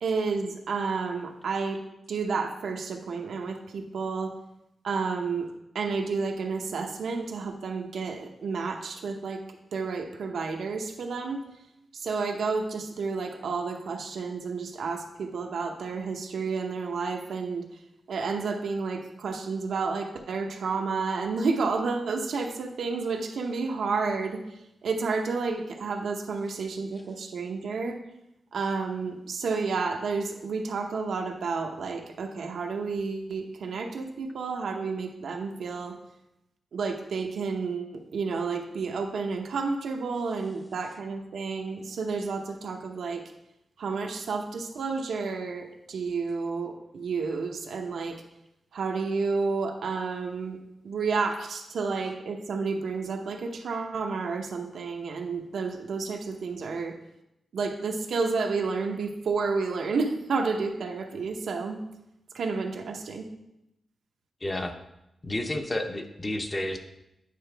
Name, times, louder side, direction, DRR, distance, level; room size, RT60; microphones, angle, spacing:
voice 1, 0.0-1.8 2.1-4.3 4.8-5.5 5.7-9.4 9.7-11.4 11.9-17.6 18.1-24.4 24.8-28.0 28.5-36.0 36.7-43.2 43.8-48.2 48.7-50.6 50.8-56.9 57.5-61.8 62.3-63.2, right 4 dB, 85° right, 3 dB, 0.8 m, -30 dB
voice 2, 64.4-64.7 65.2-66.8, left 1 dB, 20° left, 5 dB, 0.6 m, -30 dB
9.4 x 4.8 x 3.4 m, 0.86 s
wide cardioid pair, 165°, 0 cm